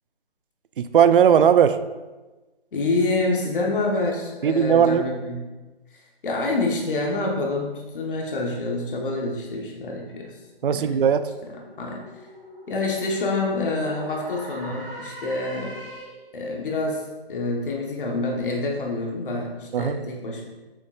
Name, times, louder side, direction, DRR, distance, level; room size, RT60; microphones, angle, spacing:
voice 1, 0.8-1.8 4.4-5.1 10.6-11.3 19.7-20.0, right 8 dB, 60° right, 12 dB, 0.4 m, -18 dB
voice 2, 2.7-5.5 6.2-10.4 10.7-11.0 11.4-12.0 12.7-15.7 16.3-20.5, left 2 dB, 55° left, -1 dB, 1.1 m, -27 dB
sound 1, 10.2-16.3, right 1 dB, 30° right, 2.0 m, -42 dB
7.3 x 5.6 x 2.3 m, 1.2 s
hypercardioid pair, 165°, 31 cm